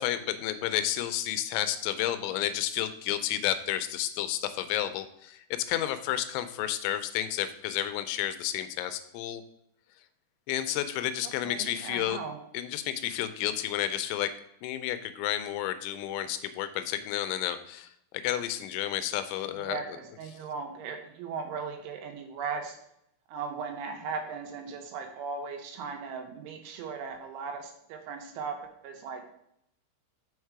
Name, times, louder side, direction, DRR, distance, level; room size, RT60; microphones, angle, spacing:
voice 1, 0.0-9.4 10.5-12.2 12.5-14.3 14.6-17.9 18.2-19.8, left 12 dB, 85° left, 11 dB, 2.9 m, -31 dB
voice 2, 11.2-12.4 19.6-22.8 23.3-28.6 28.8-29.3, right 5 dB, 85° right, 4 dB, 3.4 m, -37 dB
6.5 x 5.1 x 4.7 m, 0.74 s
omnidirectional pair, 5.4 m